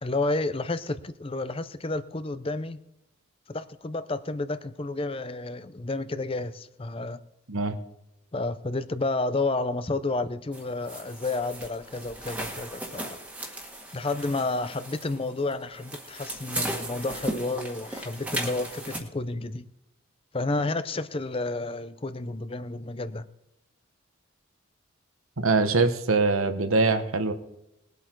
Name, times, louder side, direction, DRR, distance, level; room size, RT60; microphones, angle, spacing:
voice 1, 0.0-2.8 3.5-7.2 8.3-13.2 13.9-19.7 20.3-23.3, left 2 dB, 25° left, 0.6 m, -31 dB
sound 1, 10.5-19.0, right 1 dB, 5° right, 1.8 m, -36 dB
voice 2, 25.4-27.3, right 3 dB, 90° right, 1.2 m, -23 dB
20.5 x 8.3 x 4.5 m
head